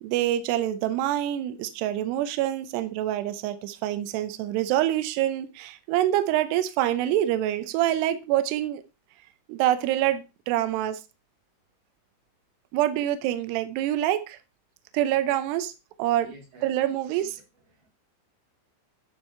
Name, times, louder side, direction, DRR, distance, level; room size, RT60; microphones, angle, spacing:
voice 1, 0.0-8.8 9.5-11.0 12.7-14.4 14.9-15.7 16.0-16.3 16.6-17.4, right 13 dB, 85° right, 2.3 m, -26 dB
voice 2, 16.2-17.3 17.7-17.9, right 2 dB, 50° right, 4.7 m, -50 dB
11.5 x 4.8 x 4.3 m
omnidirectional pair, 5.7 m